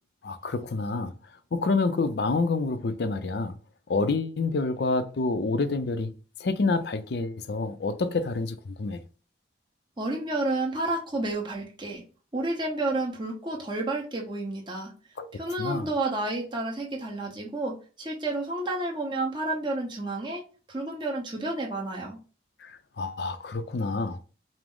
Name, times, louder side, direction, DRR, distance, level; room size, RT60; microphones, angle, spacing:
voice 1, 0.2-1.1 1.5-3.6 3.9-6.1 6.4-9.0 15.2-15.3 15.6-15.9 22.6-24.2, left 3 dB, 60° left, 0.5 m, -28 dB
voice 2, 10.0-12.0 12.3-14.9 15.3-20.4 20.7-22.2, right 2 dB, 25° right, 0.9 m, -30 dB
4.9 x 2.0 x 3.7 m
head